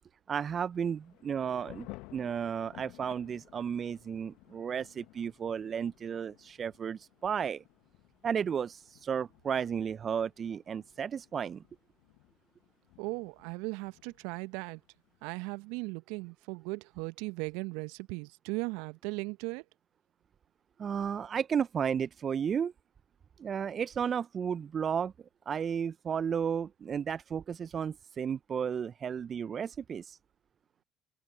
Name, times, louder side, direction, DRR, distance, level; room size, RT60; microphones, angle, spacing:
voice 1, 0.3-7.6 8.2-11.6 20.8-22.7 23.4-25.1 25.5-30.2, right 7 dB, 45° right, 0.9 m, -33 dB
Thunder / Rain, 0.7-15.2, left 24 dB, 70° left, 1.8 m, -56 dB
voice 2, 13.0-14.8 15.2-19.6, right 27 dB, 70° right, 1.1 m, -37 dB
open air
figure-of-eight pair, 55°, 0 cm